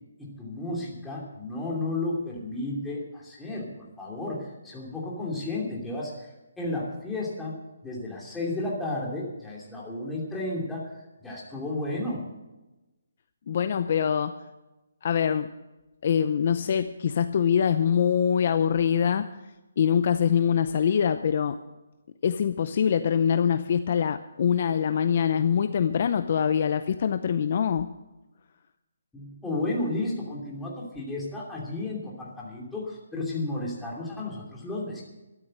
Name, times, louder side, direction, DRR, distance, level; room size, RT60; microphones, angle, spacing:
voice 1, 0.2-6.3 6.6-7.6 7.8-12.2 29.1-35.0, left 2 dB, 5° left, -5 dB, 2.9 m, -33 dB
voice 2, 13.5-14.3 15.0-15.5 16.0-19.3 19.8-21.6 22.2-27.9, left 8 dB, 40° left, 11 dB, 0.6 m, -24 dB
13.0 x 12.0 x 6.4 m, 1.0 s
hypercardioid pair, 170°, 0 cm